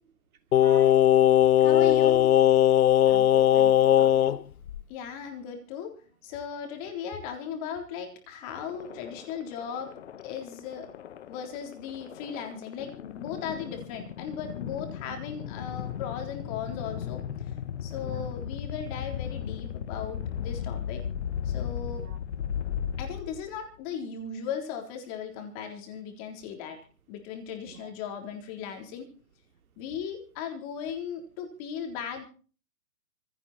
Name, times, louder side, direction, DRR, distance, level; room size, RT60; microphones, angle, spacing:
Singing, 0.5-4.4 4.7-4.8, left 11 dB, 60° left, 0.8 m, -19 dB
voice 1, 0.5-1.1 3.1-4.4 15.1-15.2 18.0-18.3 21.9-22.2 27.7-27.9, right 7 dB, 60° right, 2.8 m, -44 dB
voice 2, 1.6-2.3 4.9-6.0 6.2-9.9 10.2-10.9 11.3-17.2 17.8-21.0 21.4-22.1 23.0-26.8 27.1-29.1 29.8-32.2, left 7 dB, 25° left, 3.8 m, -37 dB
sound 1, 8.6-23.7, left 8 dB, 45° left, 1.2 m, -36 dB
27.0 x 9.6 x 4.4 m
hypercardioid pair, 170°, 48 cm